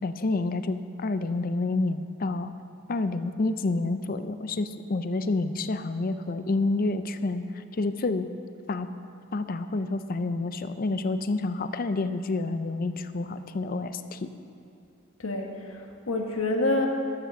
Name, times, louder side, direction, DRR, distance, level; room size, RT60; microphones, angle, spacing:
voice 1, 0.0-2.5 2.9-8.3 8.7-8.9 9.3-14.3, left 3 dB, 45° left, 11 dB, 0.5 m, -29 dB
voice 2, 15.2-16.9, left 2 dB, 80° left, 2 dB, 1.3 m, -27 dB
12.5 x 7.5 x 7.0 m, 2.6 s
head